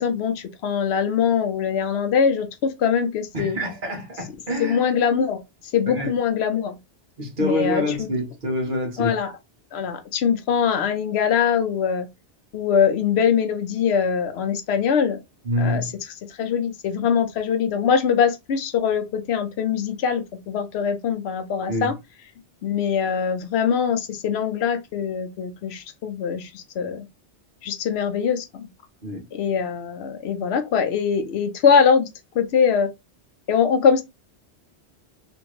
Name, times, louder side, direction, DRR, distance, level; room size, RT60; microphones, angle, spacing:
voice 1, 0.0-3.6 4.6-5.4 5.7-6.8 7.4-8.1 9.0-9.3 9.7-12.1 12.5-15.2 15.6-15.8 16.3-22.0 22.6-27.1 27.6-28.7 29.3-32.1 32.4-32.9 33.5-34.0, left 7 dB, 70° left, 0.8 m, -22 dB
voice 2, 3.3-4.8 5.9-6.1 7.2-9.1 15.4-16.0 21.7-21.9 29.0-29.3, left 1 dB, 50° right, 1.1 m, -26 dB
2.9 x 2.5 x 3.0 m
omnidirectional pair, 1.1 m